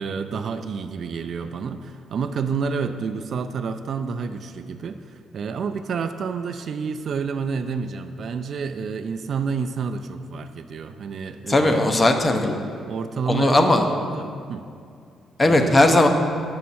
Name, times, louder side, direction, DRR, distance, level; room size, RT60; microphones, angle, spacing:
voice 1, 0.0-11.9 12.9-14.7 15.4-15.9, right 5 dB, 60° right, 9 dB, 0.3 m, -29 dB
voice 2, 11.5-12.6 13.3-13.8 15.4-16.1, left 2 dB, 25° left, 5 dB, 0.6 m, -17 dB
6.2 x 5.6 x 4.1 m, 2.4 s
cardioid pair, 90°, 0 cm